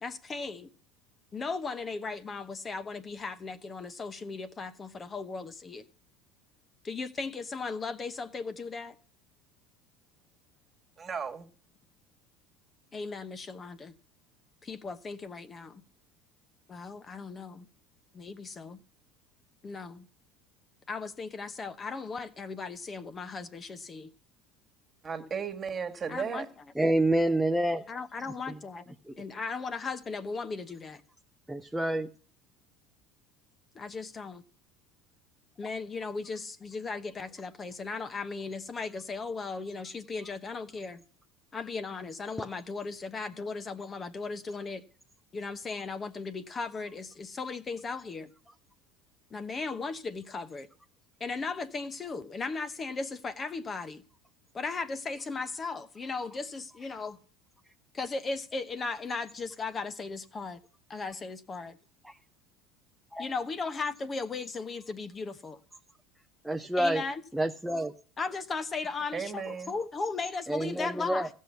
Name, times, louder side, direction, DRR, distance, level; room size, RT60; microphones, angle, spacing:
voice 1, 0.0-0.7 1.3-5.8 6.8-8.9 12.9-13.9 14.6-15.8 16.7-17.7 18.1-18.8 19.6-20.0 20.9-24.1 26.1-26.5 27.9-31.0 33.7-34.4 35.6-41.0 41.5-44.8 45.3-48.3 49.3-50.7 51.2-54.0 54.5-57.2 57.9-60.6 60.9-61.8 63.2-65.6 66.8-67.2 68.2-71.3, left 4 dB, 30° left, 0.9 m, -37 dB
voice 2, 11.0-11.5 25.0-26.5 69.1-69.8, right 6 dB, 30° right, 1.7 m, -35 dB
voice 3, 26.8-27.8 28.5-28.6 29.1-29.2 31.5-32.1 62.0-62.1 63.1-63.3 66.4-67.0 67.3-67.9 70.5-71.3, right 1 dB, 5° right, 0.7 m, -28 dB
15.0 x 6.4 x 7.0 m
hypercardioid pair, 80°, 0 cm